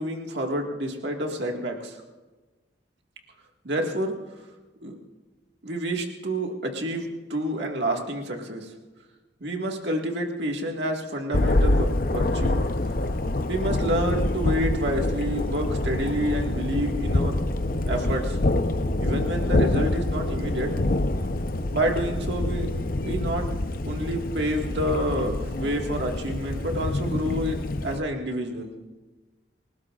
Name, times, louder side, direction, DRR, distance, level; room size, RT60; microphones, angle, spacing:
voice 1, 0.0-2.0 3.6-4.1 4.8-5.0 5.6-8.7 9.4-12.6 13.5-17.3 17.9-18.4 19.0-20.7 21.7-22.7 23.0-23.5 23.8-28.7, right 1 dB, 75° right, 1 dB, 1.9 m, -28 dB
Thunder, 11.3-28.0, left 1 dB, 50° left, 0.8 m, -26 dB
28.0 x 18.5 x 2.5 m, 1.2 s
head